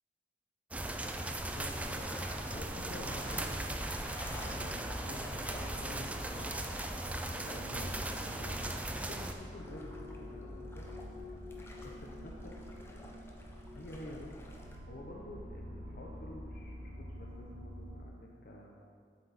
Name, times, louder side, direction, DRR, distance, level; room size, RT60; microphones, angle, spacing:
sound 1, 0.7-9.3, right 1 dB, 10° right, 0.4 m, -38 dB
voice 1, 1.2-3.9 4.4-6.5 7.2-10.8 11.6-13.1 13.7-14.3 14.8-18.7, left 1 dB, 50° left, -2 dB, 0.8 m, -50 dB
sound 2, 1.3-18.1, left 1 dB, 85° right, 2.2 m, -47 dB
sound 3, 1.5-14.8, left 1 dB, 15° left, 0.8 m, -53 dB
8.1 x 7.6 x 4.1 m, 2.1 s
head